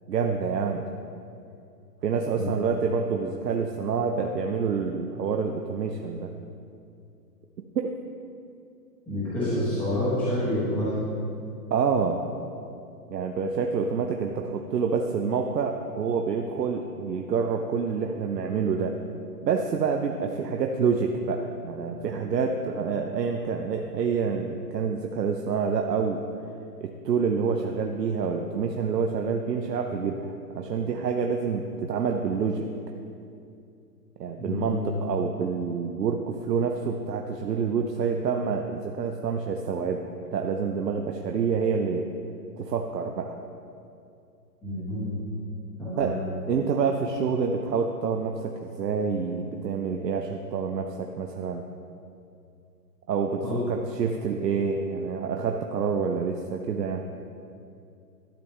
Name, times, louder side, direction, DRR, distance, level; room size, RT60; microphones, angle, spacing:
voice 1, 0.1-0.8 2.0-6.3 7.7-7.9 11.7-12.3 13.1-19.0 19.4-26.2 26.8-32.6 34.2-42.0 42.6-43.4 46.0-46.1 46.5-51.6 53.1-57.0, right 5 dB, 75° right, 3 dB, 0.8 m, -27 dB
voice 2, 9.1-10.9 34.4-34.9 44.6-45.1 45.8-46.2 53.4-53.6, left 1 dB, 5° left, -13 dB, 1.1 m, -28 dB
12.0 x 7.0 x 3.2 m, 2.5 s
hypercardioid pair, 170°, 49 cm